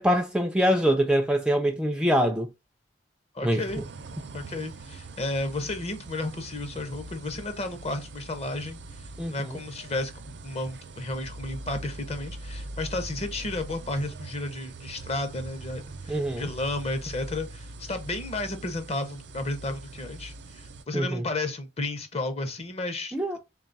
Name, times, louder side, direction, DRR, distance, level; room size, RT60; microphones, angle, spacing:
voice 1, 0.0-2.5 3.4-3.6 9.2-9.3 16.1-16.5 20.9-21.2 23.1-23.4, equal, 5° right, 0.3 m, -24 dB
voice 2, 3.3-3.8 4.3-23.4, left 2 dB, 35° left, 0.7 m, -33 dB
sound 1, 3.7-20.8, right 2 dB, 65° right, 0.5 m, -42 dB
3.8 x 2.3 x 3.8 m
head